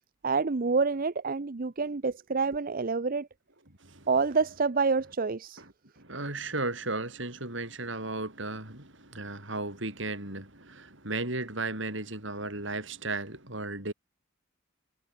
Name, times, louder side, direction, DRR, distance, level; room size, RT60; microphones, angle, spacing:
voice 1, 0.2-3.3 4.1-5.6, right 4 dB, 45° right, 0.7 m, -27 dB
voice 2, 6.0-13.9, right 2 dB, 65° right, 6.9 m, -35 dB
head